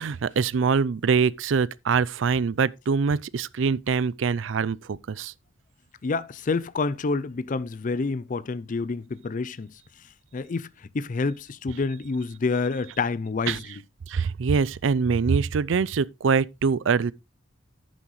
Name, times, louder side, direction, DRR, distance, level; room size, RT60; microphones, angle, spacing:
voice 1, 0.0-5.3 13.5-13.6 14.1-17.1, right 5 dB, 70° right, 0.4 m, -24 dB
voice 2, 6.0-9.7 10.3-10.7 10.9-13.6, left 4 dB, 40° left, 0.4 m, -28 dB
10.0 x 9.2 x 3.1 m
head